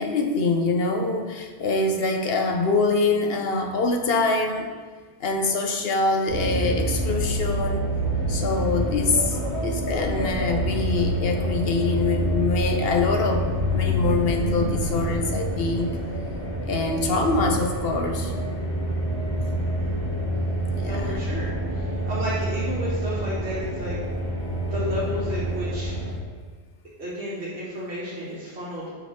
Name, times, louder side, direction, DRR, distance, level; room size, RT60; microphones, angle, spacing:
voice 1, 0.0-4.7 5.2-7.8 8.3-16.0 16.6-18.3 20.7-21.2, left 3 dB, 65° left, 5 dB, 1.0 m, -24 dB
sound 1, 6.3-26.1, right 1 dB, 85° left, 2.9 m, -27 dB
voice 2, 19.5-20.0 20.8-24.0 24.7-25.9 27.0-28.9, equal, 75° right, -9 dB, 1.7 m, -32 dB
7.1 x 5.5 x 4.3 m, 1.5 s
omnidirectional pair, 1.1 m